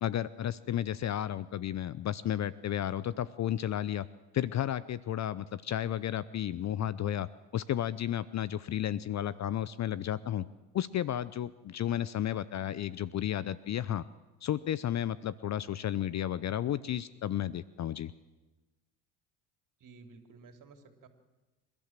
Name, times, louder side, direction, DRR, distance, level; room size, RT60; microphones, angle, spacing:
voice 1, 0.0-4.1 4.3-10.4 10.7-14.0 14.4-18.1, left 11 dB, 35° left, 18 dB, 0.6 m, -33 dB
voice 2, 19.8-21.1, right 4 dB, 45° right, 6 dB, 3.5 m, -54 dB
28.0 x 12.5 x 7.6 m, 1.1 s
hypercardioid pair, 70°, 46 cm